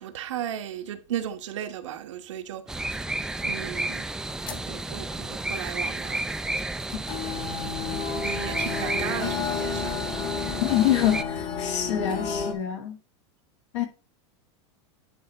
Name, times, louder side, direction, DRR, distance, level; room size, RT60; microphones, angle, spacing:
voice 1, 0.0-3.1 3.4-4.1 4.5-6.2 8.2-10.0 10.4-10.6, right 10 dB, 90° right, 1.2 m, -35 dB
sound 1, 2.7-11.2, right 2 dB, 5° right, 0.3 m, -32 dB
sound 2, 4.3-4.7 5.1-5.2 6.3-6.4 7.1-12.5, left 6 dB, 30° left, 1.3 m, -31 dB
voice 2, 10.6-13.0 13.7-13.9, left 11 dB, 75° left, 2.3 m, -25 dB
10.0 x 3.4 x 4.4 m
supercardioid pair, 140°, 15 cm